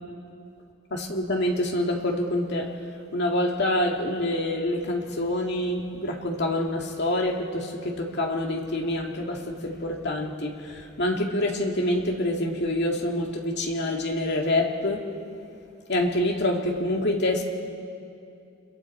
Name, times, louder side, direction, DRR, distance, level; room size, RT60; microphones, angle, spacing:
voice 1, 0.9-2.7 3.1-15.0 15.9-17.4, left 1 dB, 55° left, 1 dB, 2.2 m, -26 dB
30.0 x 21.5 x 4.5 m, 2.5 s
head